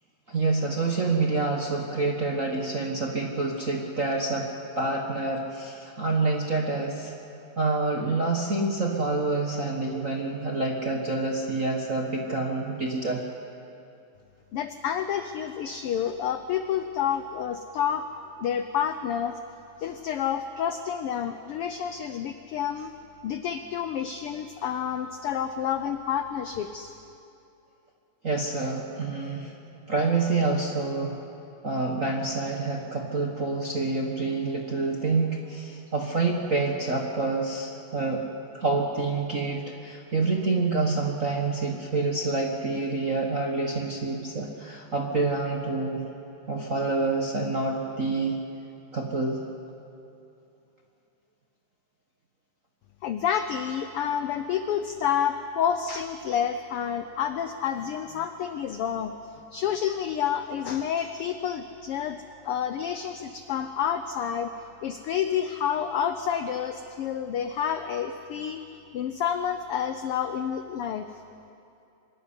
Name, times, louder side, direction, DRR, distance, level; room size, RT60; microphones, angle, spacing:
voice 1, 0.3-4.5 4.8-7.1 7.6-13.2 28.2-29.5 29.9-31.2 31.6-38.2 38.5-46.0 46.5-48.4 48.9-49.4, right 3 dB, 50° right, 1 dB, 1.0 m, -27 dB
voice 2, 14.5-18.1 18.4-19.4 19.8-22.9 23.2-26.9 53.0-68.6 68.9-71.1, left 8 dB, 85° left, 9 dB, 1.2 m, -29 dB
24.5 x 13.0 x 9.8 m, 2.7 s
omnidirectional pair, 3.4 m